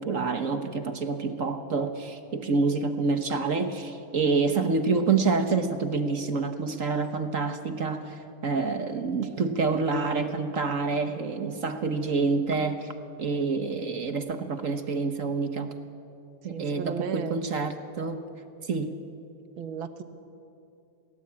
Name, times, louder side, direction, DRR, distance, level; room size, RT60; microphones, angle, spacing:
voice 1, 0.0-12.9 13.2-15.7 16.4-18.2 18.6-19.0, right 4 dB, 45° right, 8 dB, 1.4 m, -27 dB
voice 2, 16.5-17.4 19.6-20.0, right 7 dB, 75° right, 9 dB, 2.1 m, -34 dB
28.0 x 18.5 x 8.7 m, 2.8 s
omnidirectional pair, 2.2 m